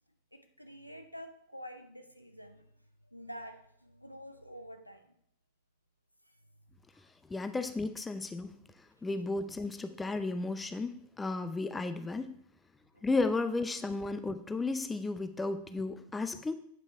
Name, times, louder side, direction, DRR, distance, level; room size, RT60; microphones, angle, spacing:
voice 1, 0.3-2.6 3.1-5.1 12.9-13.1, equal, 90° left, 7 dB, 0.7 m, -48 dB
voice 2, 7.3-8.5 9.0-12.3 13.0-16.5, left 3 dB, 10° left, 10 dB, 0.6 m, -33 dB
8.5 x 5.3 x 4.7 m, 0.66 s
figure-of-eight pair, 90°, 0 cm